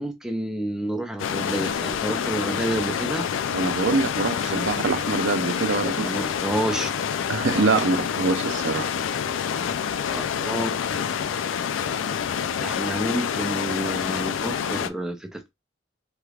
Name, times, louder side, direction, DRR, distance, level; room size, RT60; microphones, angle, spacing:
voice 1, 0.0-3.3 6.0-6.9 10.1-10.7 12.6-15.5, right 1 dB, 5° right, 0.5 m, -29 dB
sound 1, 1.2-14.9, left 7 dB, 85° left, 0.4 m, -27 dB
voice 2, 3.5-6.1 7.3-8.9, right 3 dB, 75° right, 0.6 m, -24 dB
3.3 x 3.0 x 2.4 m
head